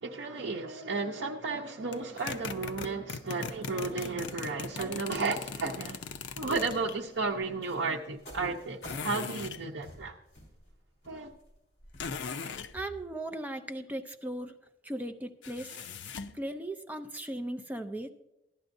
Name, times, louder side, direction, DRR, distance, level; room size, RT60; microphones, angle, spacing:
voice 1, 0.0-6.1 6.4-10.1 11.1-11.3, right 3 dB, 80° right, 0.8 m, -33 dB
sound 1, 1.9-7.0 8.8-9.6 12.0-12.7 15.4-16.4, left 5 dB, 75° left, 0.5 m, -39 dB
sound 2, 6.2-13.0, equal, 40° left, 4.7 m, -52 dB
voice 2, 12.7-14.6 14.8-15.8 16.3-18.1, right 1 dB, 10° right, 0.5 m, -37 dB
15.5 x 11.0 x 2.6 m
head